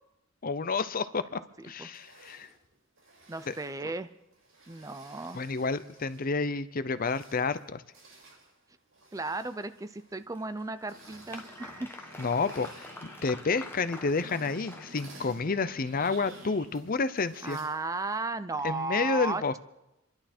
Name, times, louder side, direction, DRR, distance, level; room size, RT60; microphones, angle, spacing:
voice 1, 0.4-2.5 3.5-3.6 5.3-7.8 12.2-12.9 13.2-17.6 18.6-19.6, left 4 dB, 45° left, 13 dB, 0.6 m, -30 dB
voice 2, 1.3-1.9 3.3-4.1 4.7-5.4 9.1-11.9 17.4-19.6, right 3 dB, 15° right, 12 dB, 0.4 m, -35 dB
sound 1, 1.8-6.4 6.8-18.4, right 3 dB, 85° right, 7.4 m, -57 dB
Applause, 10.3-15.6, left 2 dB, 10° left, 1.0 m, -47 dB
sound 2, 10.9-16.7, right 1 dB, 40° right, 2.0 m, -50 dB
27.0 x 11.5 x 4.4 m, 0.92 s
head